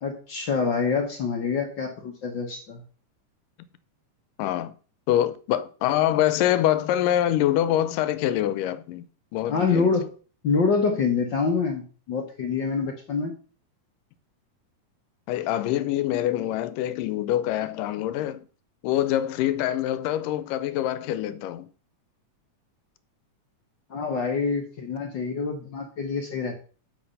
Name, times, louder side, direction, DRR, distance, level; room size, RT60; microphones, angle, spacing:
voice 1, 0.0-2.8 9.5-10.1 10.4-13.4 23.9-26.6, left 5 dB, 70° left, 1.1 m, -26 dB
voice 2, 4.4-4.7 5.1-9.1 9.3-9.9 15.3-18.5 18.8-21.7, left 12 dB, 85° left, 2.2 m, -25 dB
9.0 x 5.1 x 5.4 m
omnidirectional pair, 3.8 m